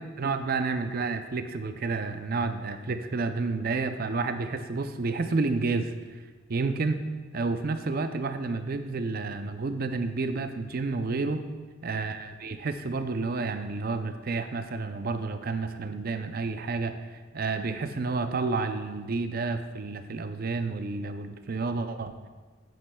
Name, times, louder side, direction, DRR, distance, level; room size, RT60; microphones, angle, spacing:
voice 1, 0.0-5.9 6.5-7.0 7.3-11.4 11.8-17.0 17.3-22.1, right 3 dB, 50° right, 9 dB, 0.5 m, -30 dB
9.6 x 9.3 x 2.3 m, 1.4 s
head